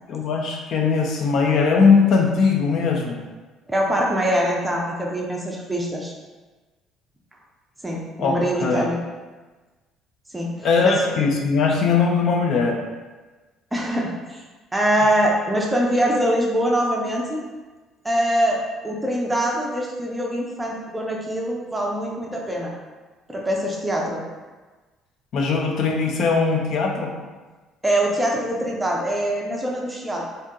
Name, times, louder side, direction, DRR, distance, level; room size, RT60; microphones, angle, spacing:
voice 1, 0.1-3.2 8.2-8.8 10.6-12.8 25.3-27.1, left 5 dB, 50° left, 1 dB, 0.4 m, -20 dB
voice 2, 3.7-6.1 7.8-9.0 10.3-11.1 13.7-14.4 14.7-17.4 18.0-18.6 18.8-22.7 23.3-24.2 27.8-30.2, equal, 10° right, -2 dB, 0.5 m, -23 dB
2.8 x 2.6 x 3.6 m, 1.3 s
cardioid pair, 145°, 0 cm